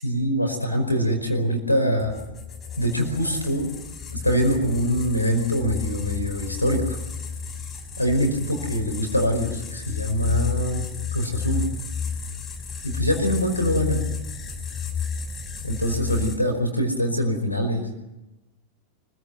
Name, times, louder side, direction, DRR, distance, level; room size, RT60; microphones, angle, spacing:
voice 1, 0.0-2.1 2.8-3.7 4.1-7.0 8.0-10.9 11.1-11.6 12.8-14.0 15.6-17.9, equal, 85° left, 5 dB, 5.0 m, -24 dB
sound 1, 2.0-16.3, left 6 dB, 20° left, 6.4 m, -32 dB
25.5 x 16.0 x 9.4 m, 0.97 s
figure-of-eight pair, 90°, 0 cm